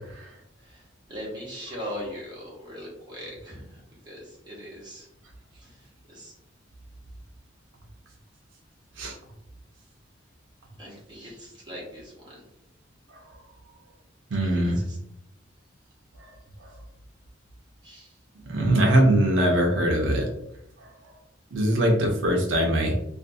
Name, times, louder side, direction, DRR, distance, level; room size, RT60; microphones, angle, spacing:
voice 1, 1.1-3.7 4.0-5.1 5.6-5.8 6.1-6.3 10.8-12.4 14.4-15.0 17.8-18.1, equal, 25° right, -5 dB, 0.9 m, -40 dB
voice 2, 14.3-14.8 18.5-20.3 21.5-22.9, right 1 dB, 75° right, 1 dB, 0.5 m, -21 dB
2.5 x 2.3 x 2.5 m, 0.82 s
head